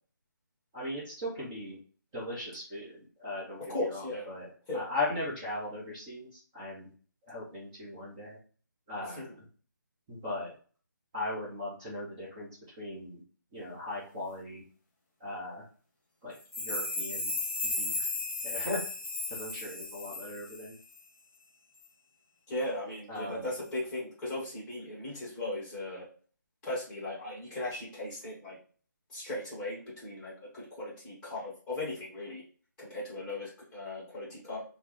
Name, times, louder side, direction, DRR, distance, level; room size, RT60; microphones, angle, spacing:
voice 1, 0.7-1.8 2.1-6.9 7.3-8.4 8.9-9.4 10.1-10.5 11.1-12.5 12.8-13.2 13.5-14.6 15.2-15.6 16.2-17.3 17.8-18.1 18.4-18.8 19.3-20.8 23.1-23.4, left 2 dB, 20° right, -7 dB, 0.8 m, -38 dB
voice 2, 3.6-4.3 4.7-4.8 9.1-9.2 22.5-26.1 26.6-28.6 29.1-32.4 32.8-34.6, left 1 dB, 10° left, -6 dB, 1.1 m, -37 dB
sound 1, 16.4-20.7 20.9-21.0, left 3 dB, 40° left, 0.9 m, -35 dB
3.3 x 2.1 x 3.0 m, 0.42 s
figure-of-eight pair, 160°, 11 cm